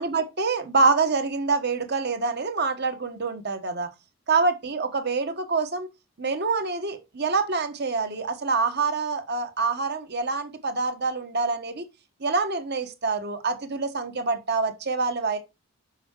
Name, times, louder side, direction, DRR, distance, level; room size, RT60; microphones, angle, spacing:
voice 1, 0.0-3.9 4.3-5.9 6.2-11.8 12.2-15.4, right 4 dB, 50° right, 1.3 m, -26 dB
7.3 x 5.7 x 4.5 m
head